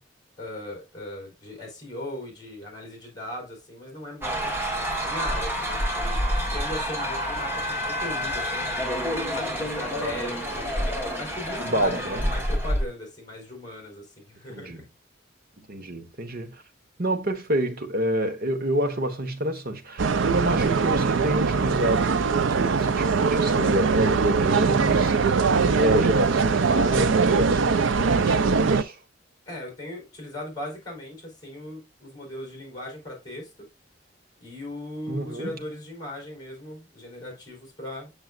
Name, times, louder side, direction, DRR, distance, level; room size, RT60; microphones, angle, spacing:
voice 1, 0.4-4.5 5.0-6.2 6.5-8.8 9.3-10.9 11.2-14.8 29.4-33.7 34.4-38.1, left 1 dB, 20° left, 4.6 m, -38 dB
sound 1, 4.2-12.8, equal, 15° right, 1.9 m, -28 dB
voice 2, 11.6-12.3 14.5-14.8 15.7-16.6 17.0-29.0 35.1-35.5, right 1 dB, 50° right, 1.3 m, -28 dB
sound 2, 20.0-28.8, right 5 dB, 90° right, 0.5 m, -22 dB
7.8 x 6.8 x 2.5 m
head